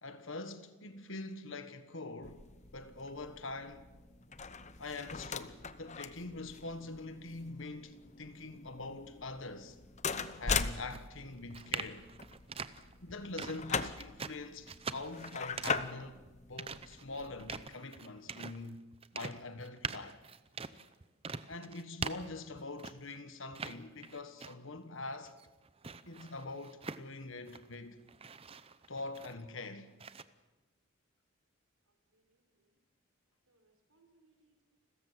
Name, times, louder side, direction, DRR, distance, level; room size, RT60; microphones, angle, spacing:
voice 1, 0.0-2.5 2.7-3.9 4.8-9.8 10.4-12.1 13.0-16.2 16.5-18.8 19.1-20.2 21.5-25.3 26.0-28.0 28.9-29.9, left 3 dB, 60° left, 1.5 m, -44 dB
sound 1, 2.2-17.7, left 5 dB, 30° left, 0.8 m, -41 dB
sound 2, 10.9-23.2 23.5-24.8 25.1-27.8 28.1-29.6 30.0-30.2, right 5 dB, 25° right, 0.6 m, -44 dB
voice 2, 31.9-32.8 33.5-34.8, right 3 dB, 85° right, 4.5 m, -72 dB
29.5 x 14.0 x 7.6 m
head